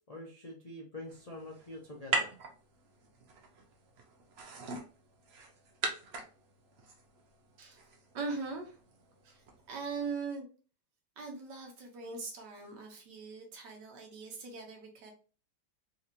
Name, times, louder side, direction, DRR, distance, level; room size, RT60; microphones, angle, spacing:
voice 1, 0.1-2.3, left 1 dB, 50° left, -2 dB, 0.4 m, -45 dB
sound 1, 1.1-10.1, right 3 dB, 55° right, 0.7 m, -41 dB
voice 2, 8.1-8.8 9.2-10.5 11.2-15.1, right 4 dB, 80° right, 2 dB, 1.6 m, -41 dB
4.0 x 2.8 x 2.5 m, 0.37 s
omnidirectional pair, 1.8 m